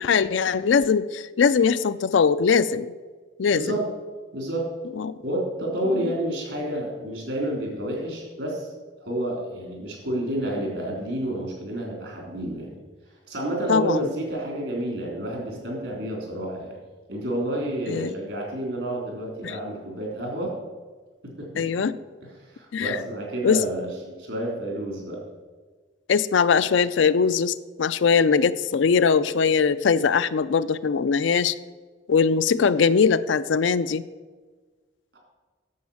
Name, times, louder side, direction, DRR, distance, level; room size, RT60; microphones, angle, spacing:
voice 1, 0.0-2.9 3.4-3.8 4.9-5.2 6.0-6.1 13.7-14.1 17.9-18.1 19.4-19.6 21.6-22.0 22.7-23.0 23.4-23.6 26.1-31.5 32.1-34.0, left 6 dB, 75° left, 13 dB, 0.4 m, -21 dB
voice 2, 3.5-3.9 4.3-4.7 5.2-8.7 9.0-12.7 13.3-16.7 17.1-20.5 21.4-21.8 22.2-25.2 35.1-35.2, right 1 dB, 65° right, -1 dB, 3.6 m, -30 dB
9.4 x 7.2 x 7.1 m, 1.4 s
head